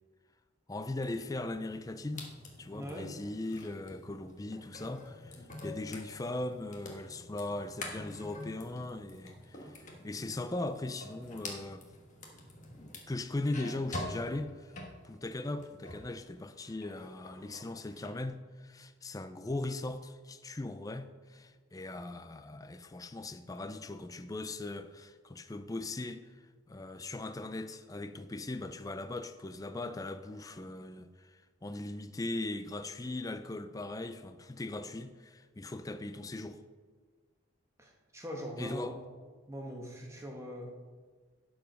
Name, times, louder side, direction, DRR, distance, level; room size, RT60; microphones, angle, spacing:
voice 1, 0.7-2.3 2.6-11.8 13.1-14.7 15.0-26.2 26.7-36.6 38.6-39.0, left 2 dB, 15° left, 0.4 m, -39 dB
sound 1, 1.0-16.1 16.5-18.2, left 2 dB, 35° left, 1.4 m, -47 dB
voice 2, 2.7-3.1 37.8-38.9 39.5-40.7, equal, 15° right, 1.3 m, -42 dB
12.0 x 4.7 x 5.3 m
head